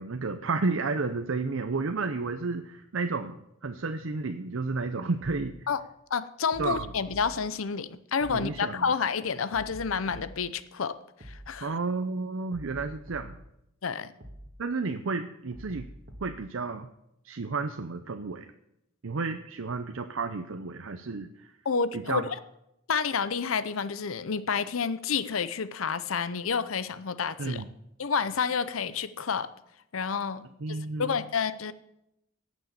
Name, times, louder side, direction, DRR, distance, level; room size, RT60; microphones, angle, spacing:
voice 1, 0.0-3.3 3.6-5.6 6.6-6.9 8.3-8.8 11.6-13.4 14.6-15.9 16.2-16.9 17.2-18.5 19.0-21.5 21.9-22.3 27.4-27.7 30.6-31.2, right 3 dB, 65° right, 7 dB, 0.6 m, -31 dB
sound 1, 5.2-5.5 6.5-7.4 8.2-8.5 9.5-10.4 11.2-11.5 12.5-13.4 14.2-14.5 15.5-16.4, equal, 45° right, 1.7 m, -45 dB
voice 2, 6.1-10.9 11.2-11.7 13.8-14.1 21.6-22.4 22.9-27.6 28.0-29.5 29.9-30.4 30.7-31.7, left 6 dB, 75° left, 14 dB, 0.7 m, -29 dB
17.5 x 6.3 x 7.2 m, 0.84 s
head